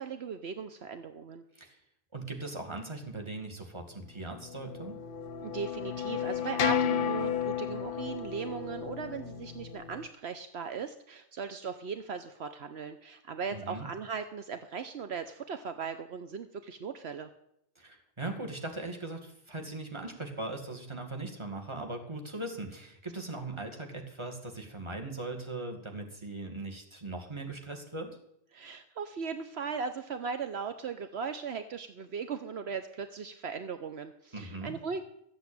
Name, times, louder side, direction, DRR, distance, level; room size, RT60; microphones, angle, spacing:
voice 1, 0.0-1.4 5.4-17.3 28.5-35.0, right 6 dB, 70° right, 8 dB, 1.1 m, -38 dB
voice 2, 2.1-5.0 13.5-13.9 17.8-28.2 34.3-34.8, right 2 dB, 25° right, 2 dB, 2.2 m, -39 dB
sound 1, 4.3-10.1, left 8 dB, 55° left, 0.8 m, -33 dB
14.0 x 8.1 x 8.9 m, 0.75 s
omnidirectional pair, 1.1 m